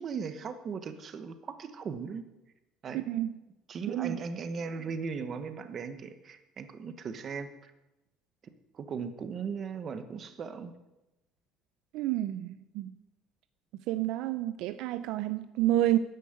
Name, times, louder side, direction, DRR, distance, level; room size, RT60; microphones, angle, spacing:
voice 1, 0.0-2.2 2.8-3.1 3.7-7.7 8.7-10.7, right 5 dB, 30° right, 1.0 m, -38 dB
voice 2, 2.9-3.3 3.9-4.2 11.9-12.9 13.9-16.0, right 14 dB, 65° right, 0.5 m, -29 dB
10.5 x 9.3 x 7.8 m
cardioid pair, 175°, 0 cm